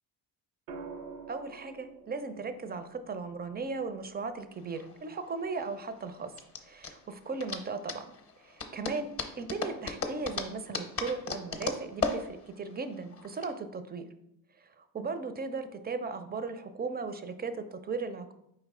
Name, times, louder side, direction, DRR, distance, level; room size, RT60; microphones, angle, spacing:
sound 1, 0.7-4.8 6.5-6.9, right 4 dB, 85° right, 0.6 m, -48 dB
voice 1, 1.3-6.3 6.6-8.1 8.4-9.1 9.4-14.1 14.6-18.3, right 4 dB, 20° right, 10 dB, 0.4 m, -37 dB
sound 2, 4.6-13.5, left 5 dB, 30° left, 0.7 m, -37 dB
4.6 x 3.2 x 3.6 m, 0.79 s
supercardioid pair, 70°, 46 cm